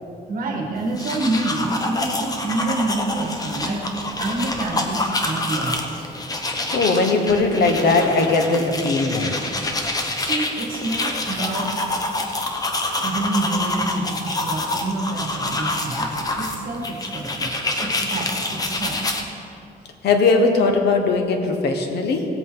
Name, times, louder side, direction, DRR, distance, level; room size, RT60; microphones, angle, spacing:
voice 1, 0.3-3.9 4.2-6.1 10.2-11.7 13.0-17.5 17.8-19.1, right 2 dB, 60° right, 1 dB, 1.6 m, -27 dB
sound 1, 0.8-19.2, left 2 dB, 20° left, 1.0 m, -27 dB
voice 2, 6.7-9.4 20.0-22.3, left 3 dB, 85° left, 4 dB, 1.3 m, -19 dB
17.0 x 8.2 x 3.9 m, 2.7 s
cardioid pair, 150°, 17 cm